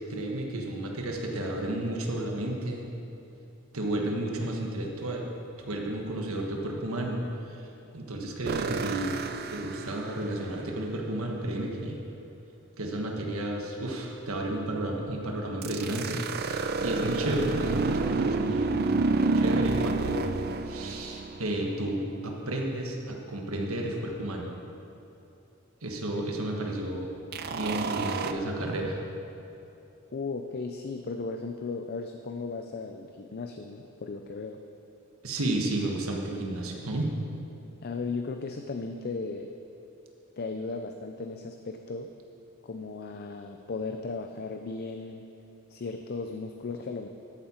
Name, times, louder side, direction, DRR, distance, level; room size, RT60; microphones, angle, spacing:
voice 1, 0.1-2.9 3.7-5.3 5.7-7.7 7.9-9.2 9.5-12.0 12.8-18.9 19.2-20.4 20.7-24.5 25.8-27.2 27.5-29.0 35.2-37.1, right 1 dB, 80° right, 1 dB, 1.4 m, -32 dB
sound 1, 8.4-10.6 15.6-21.9 27.3-28.3, right 3 dB, 45° right, 0.4 m, -29 dB
voice 2, 30.1-34.6 37.8-39.5 40.4-42.1 42.6-45.3 45.7-47.1, left 4 dB, 45° left, 5 dB, 0.5 m, -36 dB
13.0 x 8.5 x 4.4 m, 2.9 s
head